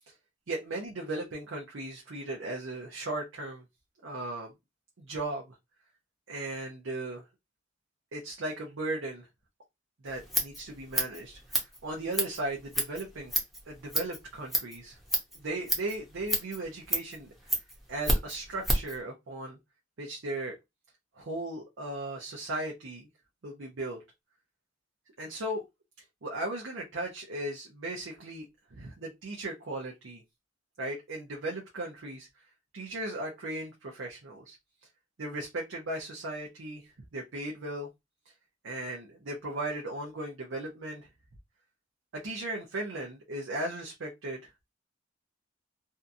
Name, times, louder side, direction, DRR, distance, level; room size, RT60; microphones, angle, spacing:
voice 1, 0.5-3.6 4.0-4.5 5.0-5.5 6.3-7.2 8.1-9.3 10.0-13.3 13.7-15.0 15.3-17.6 17.9-19.6 20.0-20.5 21.2-23.1 23.4-24.0 25.2-25.6 26.2-30.2 30.8-32.3 32.7-34.6 35.2-37.9 38.6-41.1 42.1-44.5, right 2 dB, 90° right, 0.7 m, -37 dB
Scissors, 10.1-19.0, equal, ahead, 0.7 m, -32 dB
2.7 x 2.4 x 2.5 m
head